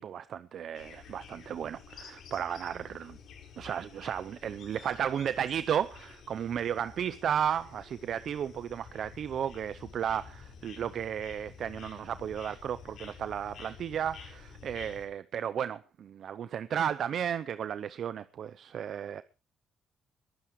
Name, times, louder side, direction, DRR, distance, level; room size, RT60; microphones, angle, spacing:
voice 1, 0.0-3.2 3.6-19.2, right 9 dB, 65° right, 0.7 m, -34 dB
sound 1, 0.7-15.1, left 6 dB, 70° left, 4.8 m, -50 dB
22.0 x 9.6 x 4.7 m
cardioid pair, 90°, 0 cm